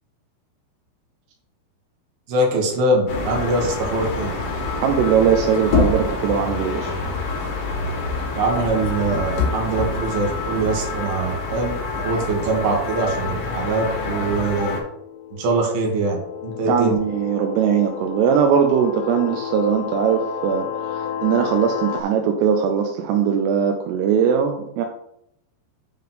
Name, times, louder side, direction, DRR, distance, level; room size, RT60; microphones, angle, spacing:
voice 1, 2.3-4.3 8.3-14.8 15.3-17.0, right 2 dB, 65° right, -1 dB, 3.1 m, -23 dB
sound 1, 3.1-14.8, left 3 dB, 65° left, 1.4 m, -26 dB
voice 2, 4.8-7.0 16.7-24.8, right 7 dB, 80° right, 4 dB, 2.5 m, -20 dB
sound 2, 14.6-22.0, left 8 dB, 85° left, 2.8 m, -32 dB
7.4 x 3.9 x 5.5 m, 0.75 s
omnidirectional pair, 5.3 m